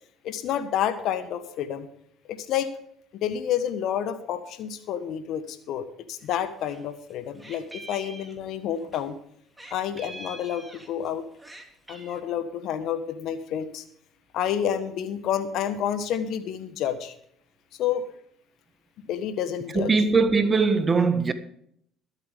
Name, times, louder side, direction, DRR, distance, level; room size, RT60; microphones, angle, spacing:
voice 1, 0.2-1.9 2.3-2.7 3.1-9.2 9.7-11.2 11.9-13.8 14.3-17.1 17.8-18.1 19.0-19.9, left 9 dB, 60° left, 1.4 m, -29 dB
Meow, 6.2-6.8 7.1-9.0 9.6-11.1 11.4-12.2, right 2 dB, 10° right, 3.0 m, -44 dB
voice 2, 19.7-21.3, right 4 dB, 30° right, 1.6 m, -21 dB
22.0 x 8.2 x 3.6 m
hypercardioid pair, 60°, 0 cm